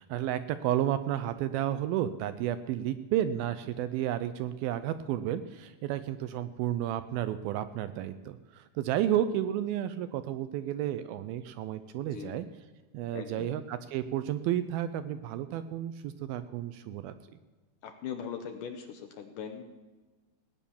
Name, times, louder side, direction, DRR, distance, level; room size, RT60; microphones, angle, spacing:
voice 1, 0.0-12.5 12.9-17.1, right 11 dB, 80° right, 12 dB, 2.2 m, -32 dB
voice 2, 12.0-12.4 13.1-13.5 17.8-19.7, left 7 dB, 75° left, 6 dB, 2.1 m, -40 dB
17.5 x 9.5 x 7.0 m, 1.2 s
omnidirectional pair, 4.7 m